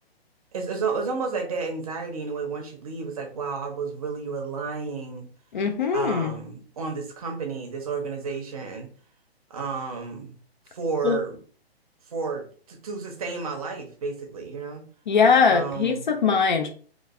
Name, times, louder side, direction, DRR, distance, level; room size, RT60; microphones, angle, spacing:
voice 1, 0.5-5.3 5.9-8.9 9.5-10.3 10.7-11.4 12.1-14.8 15.5-16.1, right 4 dB, 35° right, 2 dB, 0.6 m, -31 dB
voice 2, 5.5-6.4 11.0-11.2 15.1-16.7, left 5 dB, 50° left, 5 dB, 0.4 m, -21 dB
3.1 x 2.3 x 2.3 m, 0.42 s
figure-of-eight pair, 130°, 31 cm